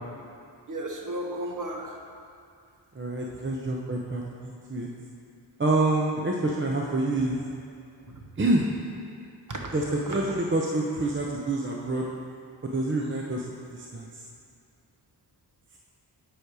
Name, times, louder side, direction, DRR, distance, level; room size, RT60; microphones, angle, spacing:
voice 1, 0.7-2.0 8.0-8.2 9.5-9.6 9.9-10.2, right 1 dB, 45° right, 0 dB, 1.1 m, -34 dB
voice 2, 2.9-4.9 5.6-7.4 8.4-8.7 9.7-12.1 12.6-13.4 13.7-14.2, right 2 dB, 25° right, -1 dB, 0.7 m, -27 dB
9.3 x 4.8 x 4.8 m, 2.4 s
wide cardioid pair, 80°, 43 cm